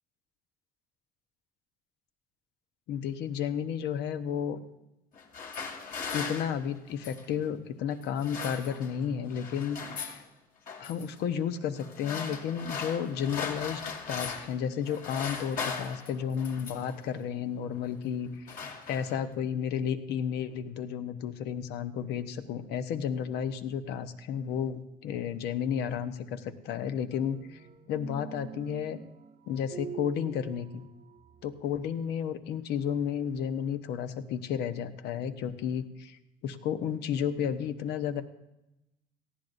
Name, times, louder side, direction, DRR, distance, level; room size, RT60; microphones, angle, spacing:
voice 1, 2.9-4.6 6.1-10.2 10.8-13.8 14.1-29.0 29.5-30.9 31.4-38.2, left 8 dB, 80° left, 9 dB, 1.0 m, -32 dB
sound 1, 5.1-7.3 8.0-9.0 9.3-10.2 10.7-11.1 11.8-14.6 14.8-17.0 17.7-18.0 18.2-19.3, left 5 dB, 55° left, 2.4 m, -38 dB
sound 2, 27.1-32.1, right 7 dB, 40° right, 0.9 m, -46 dB
18.5 x 14.5 x 2.6 m, 0.94 s
cardioid pair, 110°, 17 cm